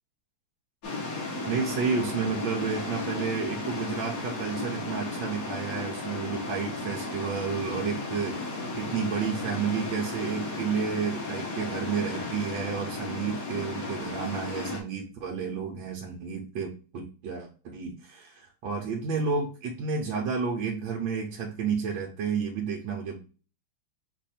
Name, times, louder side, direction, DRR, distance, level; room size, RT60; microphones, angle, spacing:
sound 1, 0.8-14.8, left 3 dB, 50° left, 1.6 m, -34 dB
voice 1, 1.4-23.2, right 6 dB, 80° right, 0 dB, 1.5 m, -31 dB
4.8 x 2.6 x 4.1 m, 0.36 s
omnidirectional pair, 2.1 m